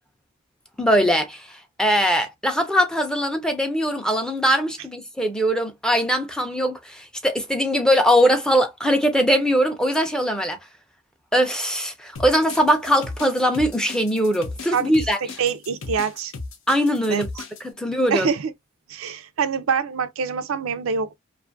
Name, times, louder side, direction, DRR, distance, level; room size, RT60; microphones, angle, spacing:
voice 1, 0.8-1.5 1.8-10.6 11.3-15.2 16.7-17.3 17.6-18.3, equal, 5° left, 0.4 m, -21 dB
sound 1, 12.2-17.6, left 3 dB, 70° left, 0.6 m, -35 dB
voice 2, 15.4-16.3 17.1-17.2 18.1-18.5 18.9-21.2, right 6 dB, 85° right, 0.4 m, -25 dB
2.5 x 2.4 x 2.4 m
head